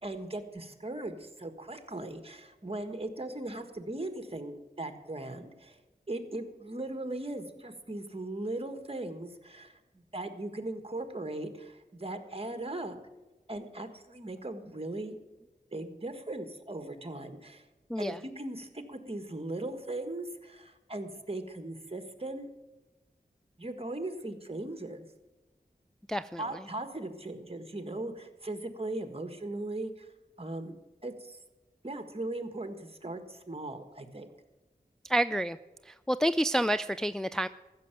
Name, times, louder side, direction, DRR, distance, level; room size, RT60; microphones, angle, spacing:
voice 1, 0.0-5.8 6.1-9.8 10.1-13.0 13.5-15.2 15.7-17.6 18.0-22.5 23.6-25.1 26.4-30.1 30.4-30.7 31.0-31.4 31.8-34.3, right 2 dB, 35° right, 8 dB, 1.6 m, -38 dB
voice 2, 17.9-18.2 26.1-26.6 35.0-35.6 35.8-37.5, right 1 dB, 5° left, 12 dB, 0.3 m, -29 dB
14.5 x 6.8 x 9.0 m, 1.1 s
wide cardioid pair, 55°, 17 cm